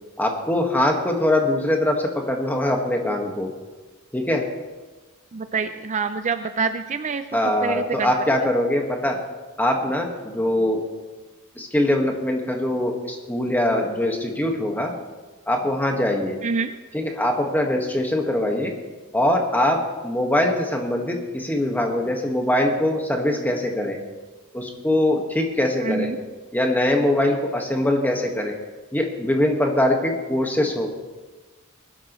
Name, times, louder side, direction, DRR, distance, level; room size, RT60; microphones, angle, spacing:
voice 1, 0.2-3.5 4.1-4.5 7.3-9.2 9.6-10.8 11.6-14.9 15.5-16.4 16.9-18.7 19.1-24.0 24.5-26.1 26.5-28.6 28.9-30.9, left 1 dB, 10° left, 2 dB, 1.5 m, -22 dB
voice 2, 5.3-7.2 7.6-8.1 8.4-8.5 16.4-16.7 25.8-26.2, right 5 dB, 35° right, 9 dB, 0.4 m, -26 dB
20.5 x 12.0 x 3.1 m, 1.3 s
head